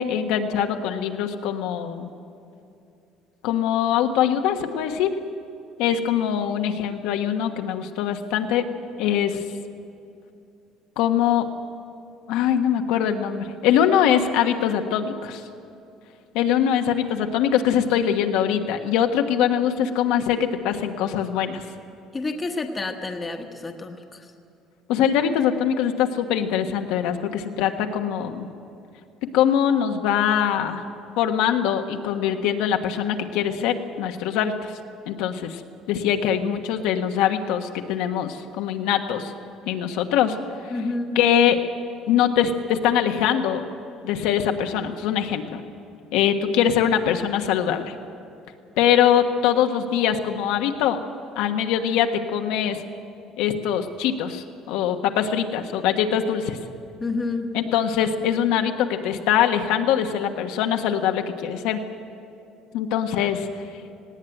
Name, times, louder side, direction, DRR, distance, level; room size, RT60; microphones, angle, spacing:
voice 1, 0.0-2.1 3.4-5.1 5.8-8.6 9.0-9.4 11.0-11.5 12.3-15.4 16.3-21.6 24.9-28.5 29.3-30.8 31.2-34.7 35.1-35.6 35.9-39.3 39.6-40.4 40.6-40.7 41.1-41.6 42.1-43.6 44.0-45.6 46.1-47.9 48.8-51.0 51.4-52.8 53.4-56.6 57.5-61.8 62.7-63.5, left 9 dB, 80° left, 5 dB, 1.3 m, -22 dB
voice 2, 22.1-24.3 40.7-41.2 57.0-57.5, left 3 dB, 15° left, 4 dB, 1.1 m, -29 dB
19.0 x 17.0 x 9.1 m, 2.7 s
cardioid pair, 180°, 0 cm